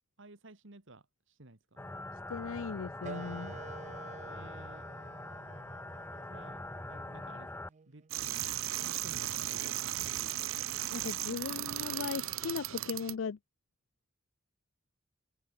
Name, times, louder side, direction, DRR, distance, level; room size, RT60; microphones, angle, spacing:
voice 1, 0.2-1.8 4.3-4.9 6.3-7.5 7.9-8.1 8.8-10.0, right 2 dB, 70° right, 2.0 m, -54 dB
sound 1, 1.8-7.7, left 2 dB, 10° left, 0.7 m, -43 dB
voice 2, 2.3-3.6 10.9-13.4, left 5 dB, 70° left, 0.5 m, -38 dB
sound 2, 3.0-8.2, right 5 dB, 35° right, 0.4 m, -50 dB
sound 3, 8.1-13.1, right 13 dB, 85° right, 0.7 m, -36 dB
open air
head